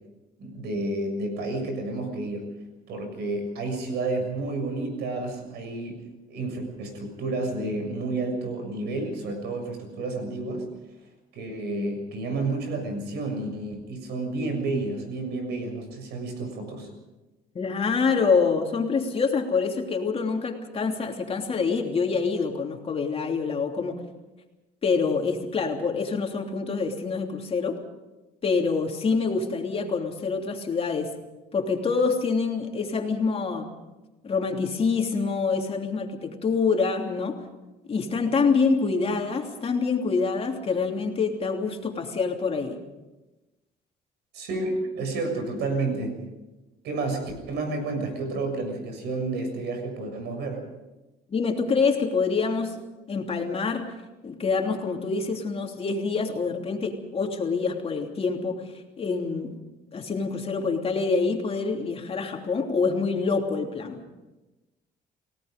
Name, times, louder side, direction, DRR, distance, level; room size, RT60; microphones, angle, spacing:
voice 1, 0.4-2.5 2.9-6.0 6.3-10.7 11.3-16.9 44.3-46.2 46.8-50.7, right 2 dB, 80° right, 5 dB, 6.9 m, -30 dB
voice 2, 17.5-24.0 24.8-27.8 28.4-31.1 31.5-33.7 34.2-37.4 37.9-42.8 51.3-52.8 53.1-53.9 54.2-59.6 59.9-64.0, left 4 dB, 35° left, 2 dB, 3.1 m, -26 dB
30.0 x 18.0 x 5.2 m, 1.1 s
cardioid pair, 110°, 17 cm